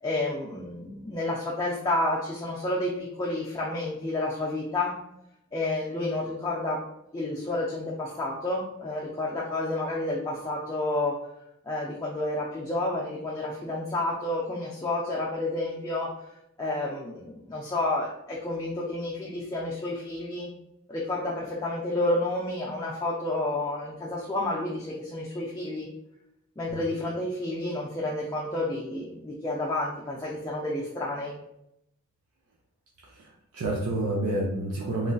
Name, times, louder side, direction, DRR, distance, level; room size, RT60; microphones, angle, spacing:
voice 1, 0.0-4.9 5.5-6.8 7.1-11.2 11.7-16.1 16.6-20.5 20.9-25.9 26.6-31.4, left 2 dB, 15° left, -4 dB, 0.3 m, -30 dB
voice 2, 33.0-35.1, right 1 dB, 75° right, -3 dB, 0.5 m, -29 dB
3.0 x 2.5 x 2.2 m, 0.83 s
head